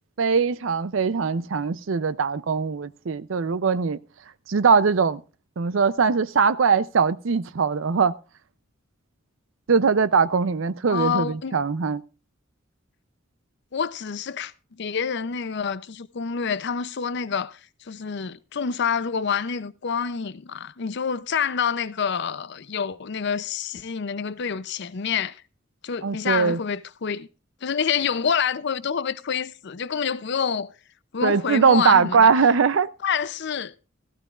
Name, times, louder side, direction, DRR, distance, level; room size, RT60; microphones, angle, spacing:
voice 1, 0.2-4.0 4.5-5.2 5.6-8.1 9.7-12.0 26.0-26.6 31.2-32.9, right 5 dB, 75° right, 0.5 m, -21 dB
voice 2, 10.9-11.6 13.7-25.4 25.8-27.3 27.6-30.7 31.1-32.3 33.0-33.7, left 6 dB, 60° left, 0.6 m, -27 dB
15.5 x 14.5 x 2.4 m
head